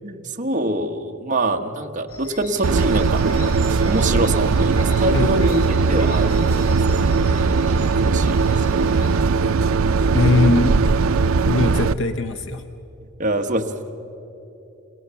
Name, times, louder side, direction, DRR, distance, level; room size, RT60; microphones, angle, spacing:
voice 1, 0.0-3.6 3.8-6.7 7.0-7.6 7.9-9.0 9.4-9.5 9.8-10.2 13.2-13.6, right 1 dB, 40° right, 5 dB, 1.2 m, -25 dB
sound 1, 2.1-9.1, left 2 dB, 85° left, 7.7 m, -41 dB
sound 2, 2.6-11.9, right 4 dB, 75° right, 0.5 m, -19 dB
voice 2, 10.1-10.8 11.4-12.6, left 3 dB, 60° left, 8 dB, 0.8 m, -20 dB
29.0 x 18.0 x 7.0 m, 2.9 s
head